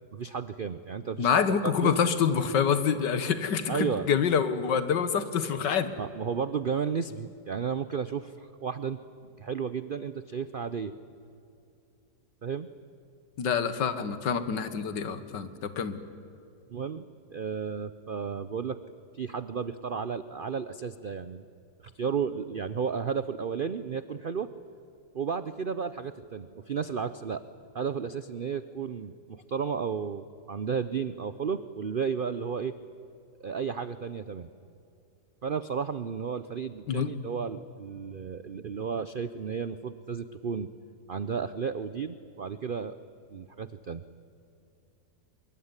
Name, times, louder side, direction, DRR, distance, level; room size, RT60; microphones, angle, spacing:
voice 1, 0.1-1.3 1.6-1.9 3.7-4.1 6.0-9.0 9.4-10.9 12.4-12.7 16.7-17.0 17.3-18.8 19.1-21.4 21.9-24.5 25.1-27.4 27.7-32.7 33.4-34.5 35.4-40.7 41.1-43.0 43.3-44.0, right 6 dB, 70° right, 13 dB, 0.5 m, -33 dB
voice 2, 1.2-5.9 13.4-16.0 36.9-37.1, left 7 dB, 85° left, 12 dB, 2.0 m, -26 dB
24.5 x 22.0 x 9.8 m, 2.7 s
omnidirectional pair, 1.9 m